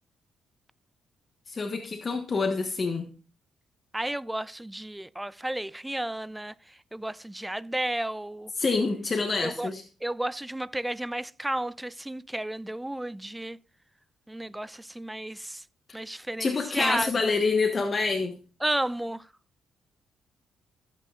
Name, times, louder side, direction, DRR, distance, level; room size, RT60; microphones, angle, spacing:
voice 1, 1.5-3.1 8.6-9.8 15.9-16.0 16.4-18.4, left 4 dB, 40° left, 1.2 m, -27 dB
voice 2, 3.9-8.5 9.4-9.7 10.0-13.6 14.3-15.6 15.9-17.3 18.6-19.3, right 1 dB, 10° right, 0.4 m, -32 dB
14.5 x 8.3 x 2.4 m
cardioid pair, 75°, 0 cm